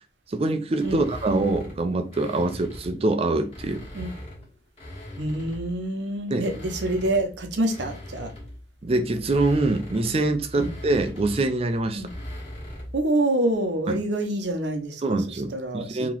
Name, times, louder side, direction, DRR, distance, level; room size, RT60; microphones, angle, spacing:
voice 1, 0.3-3.8 6.3-6.4 8.8-12.0 15.0-16.1, right 2 dB, 35° right, 0.5 m, -24 dB
sound 1, 0.8-3.0 3.4-5.8 6.3-13.0, equal, 30° left, 1.4 m, -40 dB
voice 2, 5.2-8.3 10.5-10.7 12.0-12.1 12.9-15.2 15.5-16.1, right 1 dB, 75° right, 0.7 m, -26 dB
2.9 x 2.9 x 3.8 m
head